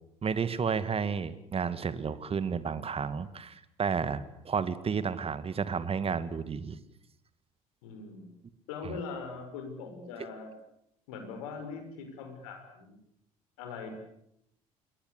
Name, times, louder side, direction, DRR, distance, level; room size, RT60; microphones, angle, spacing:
voice 1, 0.2-6.8 8.8-9.0, right 6 dB, 30° right, 14 dB, 2.1 m, -32 dB
voice 2, 7.8-8.3 8.7-10.5 11.1-13.0 13.6-13.9, left 5 dB, 70° left, 6 dB, 6.2 m, -41 dB
28.5 x 23.0 x 8.4 m, 0.77 s
figure-of-eight pair, 55°, 18 cm